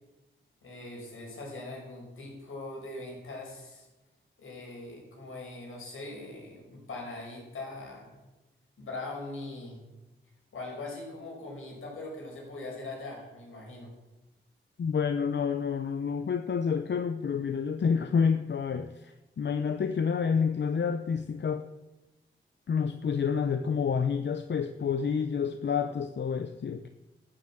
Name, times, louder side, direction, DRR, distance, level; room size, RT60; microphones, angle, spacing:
voice 1, 0.6-3.9 4.4-8.2 8.8-9.8 10.5-13.9, left 2 dB, 80° left, -2 dB, 5.3 m, -41 dB
voice 2, 14.8-21.7 22.7-26.9, left 6 dB, 60° left, 9 dB, 0.7 m, -29 dB
13.0 x 7.6 x 7.4 m, 1.1 s
cardioid pair, 65°, 21 cm